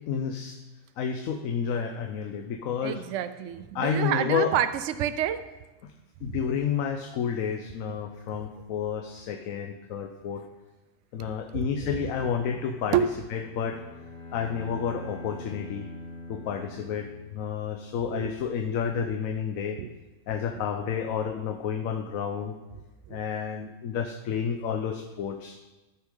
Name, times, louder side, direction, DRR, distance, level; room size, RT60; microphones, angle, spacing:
voice 1, 0.1-0.6 1.0-3.0 3.7-4.5 5.8-5.9 6.2-10.4 11.1-13.0 13.3-14.0 14.3-15.9 16.3-19.8 20.3-22.5 23.1-25.6, left 7 dB, 80° left, 5 dB, 1.1 m, -30 dB
voice 2, 2.8-5.4 6.3-6.4 11.2-12.3 12.9-13.1 18.1-18.3 18.8-18.9 19.8-19.9 23.1-23.2, right 10 dB, 70° right, 12 dB, 0.9 m, -29 dB
Bowed string instrument, 13.0-17.8, left 1 dB, 10° left, 1.9 m, -43 dB
13.5 x 6.2 x 3.8 m, 1.1 s
omnidirectional pair, 1.4 m